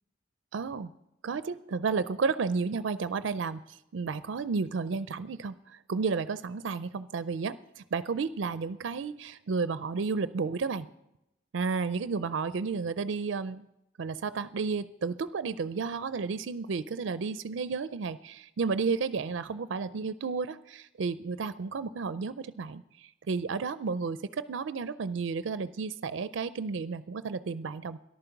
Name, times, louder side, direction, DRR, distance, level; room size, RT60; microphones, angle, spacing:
voice 1, 0.5-0.9 1.2-10.9 11.5-13.7 14.0-28.0, right 4 dB, 70° right, 14 dB, 0.4 m, -32 dB
14.0 x 11.5 x 5.8 m, 0.86 s
head